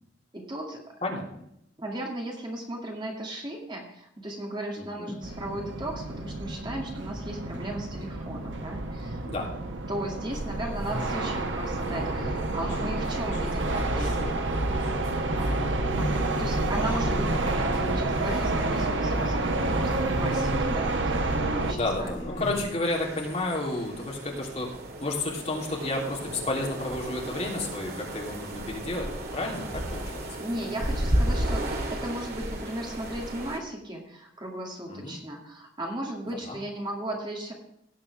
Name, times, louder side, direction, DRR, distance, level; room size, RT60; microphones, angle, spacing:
voice 1, 0.3-0.8 1.8-9.2 9.9-14.4 15.4-15.6 15.9-22.2 30.4-37.5, right 1 dB, 25° right, 0 dB, 2.1 m, -36 dB
voice 2, 4.8-5.2 9.2-9.5 21.7-24.7 25.0-30.2 34.9-35.2 36.5-36.6, left 2 dB, 35° left, -2 dB, 3.1 m, -31 dB
sound 1, 5.2-21.7, right 2 dB, 75° right, 1.2 m, -29 dB
sound 2, 10.3-22.6, equal, 60° left, 4.4 m, -36 dB
sound 3, 22.8-33.6, right 1 dB, 55° right, 2.1 m, -33 dB
17.5 x 7.6 x 3.4 m, 0.76 s
head